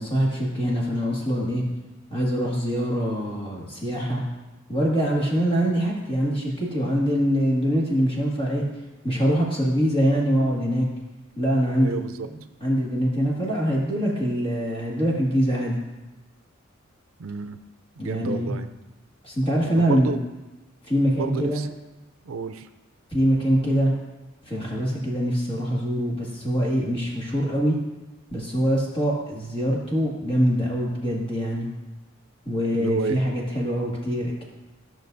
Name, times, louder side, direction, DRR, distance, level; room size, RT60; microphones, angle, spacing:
voice 1, 0.0-1.6 2.1-4.2 4.7-8.6 9.0-10.9 11.4-12.0 12.6-15.8 18.0-18.5 19.2-20.1 20.9-21.6 23.1-23.9 24.5-27.8 28.3-31.7 32.5-34.4, equal, 25° left, -4 dB, 2.0 m, -24 dB
voice 2, 11.7-12.3 17.2-17.6 18.0-18.7 19.7-20.2 21.1-21.7 22.2-22.7 32.7-33.2, right 4 dB, 90° right, 10 dB, 0.5 m, -30 dB
14.5 x 6.3 x 2.6 m, 1.1 s
head